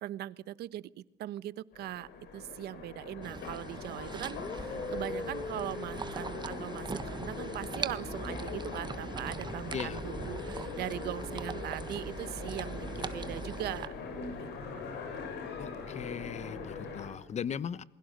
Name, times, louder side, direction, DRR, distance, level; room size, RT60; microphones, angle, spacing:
voice 1, 0.0-13.9 14.4-14.5 14.8-14.9, right 14 dB, 75° right, 17 dB, 1.1 m, -40 dB
Train, 1.7-17.1, left 4 dB, 80° left, 7.5 m, -42 dB
sound 1, 3.2-3.5 4.3-9.6 10.1-14.0, left 3 dB, 20° left, 1.3 m, -46 dB
sound 2, 3.2-13.9, right 5 dB, 25° right, 1.4 m, -41 dB
voice 2, 15.6-17.8, left 8 dB, 40° left, 18 dB, 1.1 m, -38 dB
28.0 x 22.0 x 9.2 m, 0.90 s
cardioid pair, 110°, 17 cm